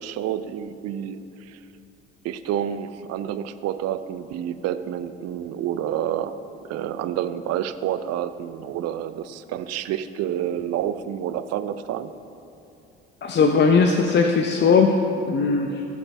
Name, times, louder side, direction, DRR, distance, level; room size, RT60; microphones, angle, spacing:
voice 1, 0.0-1.6 2.2-6.4 6.6-12.1, right 10 dB, 50° right, 12 dB, 0.7 m, -29 dB
voice 2, 13.2-15.0 15.2-15.8, left 5 dB, 35° left, 4 dB, 0.8 m, -19 dB
20.0 x 8.1 x 3.5 m, 2.7 s
figure-of-eight pair, 55°, 33 cm